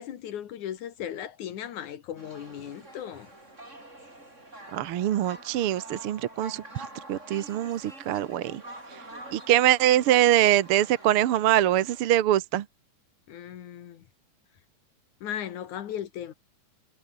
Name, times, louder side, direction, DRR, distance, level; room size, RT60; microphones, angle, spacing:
voice 1, 0.0-3.3 13.3-14.0 15.2-16.3, left 10 dB, 75° left, 3.0 m, -37 dB
sound 1, 2.2-12.1, right 1 dB, 20° right, 7.7 m, -46 dB
voice 2, 4.7-8.6 9.3-12.6, right 13 dB, 60° right, 1.6 m, -23 dB
omnidirectional pair, 3.4 m